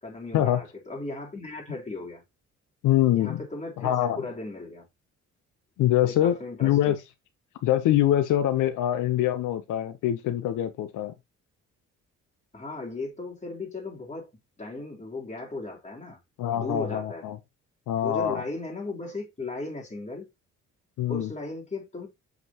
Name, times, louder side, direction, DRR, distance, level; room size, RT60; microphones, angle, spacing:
voice 1, 0.0-2.2 3.1-4.9 6.0-7.0 12.5-14.3 14.6-16.2 16.6-17.3 17.9-20.3 21.1-22.1, left 2 dB, 25° left, 3.7 m, -36 dB
voice 2, 2.8-3.4 3.8-4.2 5.8-6.3 6.6-7.0 7.6-11.1 16.4-17.4 17.9-18.4 21.0-21.3, left 12 dB, 85° left, 0.9 m, -24 dB
8.0 x 5.3 x 3.0 m
cardioid pair, 90°, 30 cm